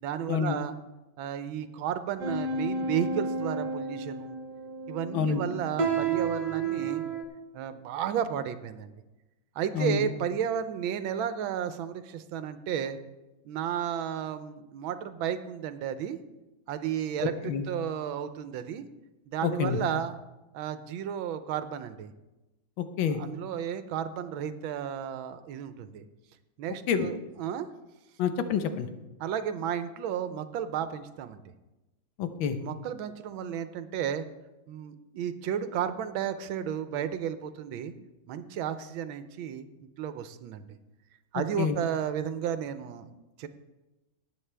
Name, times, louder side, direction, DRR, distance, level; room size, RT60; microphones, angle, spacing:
voice 1, 0.0-0.8 1.2-4.4 4.9-7.0 7.5-8.9 9.6-13.0 13.4-16.2 16.7-18.9 19.3-20.2 20.5-22.1 23.1-26.0 26.6-27.7 29.2-31.4 32.6-34.2 34.7-37.9 38.3-39.7 40.0-40.7 41.3-43.1 43.4-43.5, right 9 dB, 85° right, 11 dB, 1.5 m, -33 dB
sound 1, 2.2-7.2, right 4 dB, 55° right, 1.6 m, -31 dB
voice 2, 9.7-10.1 17.4-17.6 19.4-19.8 22.8-23.2 26.9-27.1 28.2-28.9 32.2-32.6 41.6-41.8, left 7 dB, 85° left, 9 dB, 1.7 m, -27 dB
18.0 x 8.1 x 3.4 m, 1.1 s
omnidirectional pair, 2.1 m